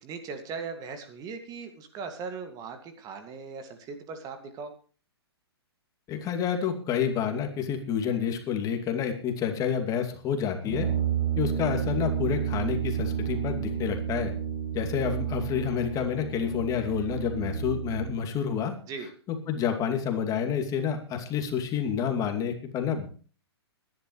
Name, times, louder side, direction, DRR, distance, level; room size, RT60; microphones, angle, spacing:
voice 1, 0.0-4.7 18.9-19.1, right 5 dB, 25° right, 7 dB, 2.2 m, -39 dB
voice 2, 6.1-10.9 11.4-14.3 14.7-18.7 19.3-23.1, left 8 dB, 25° left, 5 dB, 2.5 m, -29 dB
Brass instrument, 10.6-18.1, right 8 dB, 5° right, 6.4 m, -31 dB
21.5 x 11.0 x 3.2 m, 0.39 s
hypercardioid pair, 125°, 14 cm